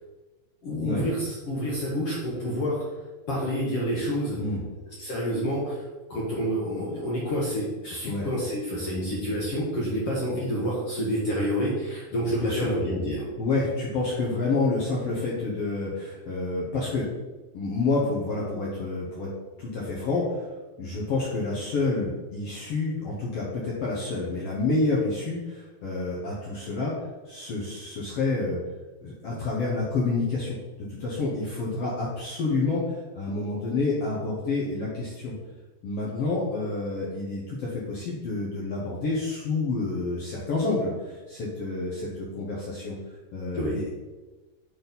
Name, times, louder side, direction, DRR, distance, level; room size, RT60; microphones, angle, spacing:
voice 1, 0.6-2.8 3.3-4.4 5.0-13.2 43.5-43.8, equal, 60° left, -5 dB, 1.6 m, -28 dB
voice 2, 13.4-17.1 17.5-19.3 19.6-20.5 20.8-26.9 27.3-28.6 29.0-30.6 30.9-35.3 35.8-43.0 43.3-43.9, left 3 dB, 75° left, -4 dB, 1.4 m, -28 dB
6.8 x 4.1 x 5.3 m, 1.2 s
omnidirectional pair, 4.3 m